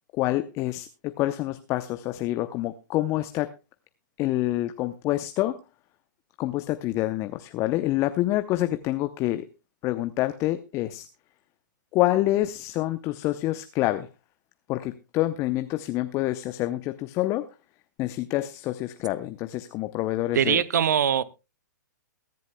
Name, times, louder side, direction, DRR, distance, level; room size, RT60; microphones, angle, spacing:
voice 1, 0.1-3.5 4.2-5.6 6.4-9.5 9.8-11.1 11.9-14.1 14.7-17.5 18.0-20.6, left 16 dB, 30° left, 10 dB, 0.7 m, -27 dB
voice 2, 20.3-21.2, right 8 dB, 65° right, 15 dB, 0.8 m, -22 dB
22.5 x 10.5 x 2.2 m, 0.26 s
figure-of-eight pair, 120°, 10 cm